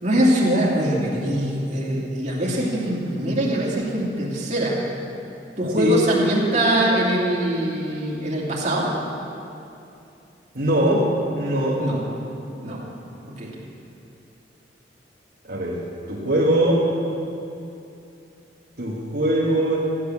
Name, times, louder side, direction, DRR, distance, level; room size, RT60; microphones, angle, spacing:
voice 1, 0.0-4.8 5.6-8.9 11.8-12.0 12.6-12.8 13.3-13.5, right 1 dB, 40° right, -4 dB, 2.6 m, -22 dB
voice 2, 10.5-11.9 15.5-16.9 18.8-19.8, right 1 dB, 55° right, -7 dB, 1.6 m, -21 dB
14.5 x 8.7 x 7.2 m, 2.7 s
head